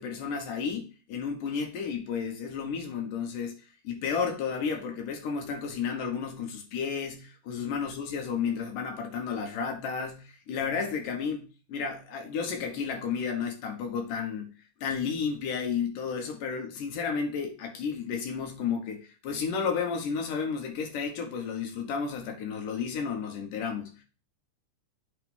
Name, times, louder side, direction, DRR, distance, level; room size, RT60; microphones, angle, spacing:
voice 1, 0.0-3.5 3.8-11.4 11.7-14.5 14.8-24.0, left 6 dB, 75° left, 3 dB, 2.8 m, -32 dB
8.3 x 3.2 x 5.3 m, 0.36 s
omnidirectional pair, 3.8 m